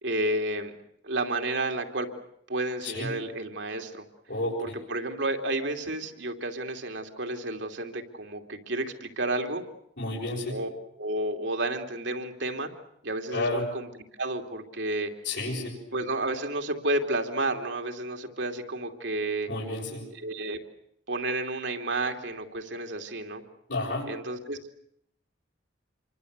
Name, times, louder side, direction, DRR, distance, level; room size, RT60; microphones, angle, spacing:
voice 1, 0.0-0.7 1.0-2.1 2.5-4.1 4.6-9.6 10.5-10.7 11.0-12.7 13.0-15.1 15.9-19.5 20.1-20.6 21.1-23.4 24.1-24.6, right 2 dB, 70° right, 5 dB, 2.8 m, -31 dB
voice 2, 10.0-10.5 13.3-13.6 15.2-15.7 19.5-20.0 23.7-24.0, left 2 dB, 65° left, -4 dB, 7.3 m, -30 dB
27.5 x 24.0 x 8.1 m, 0.74 s
head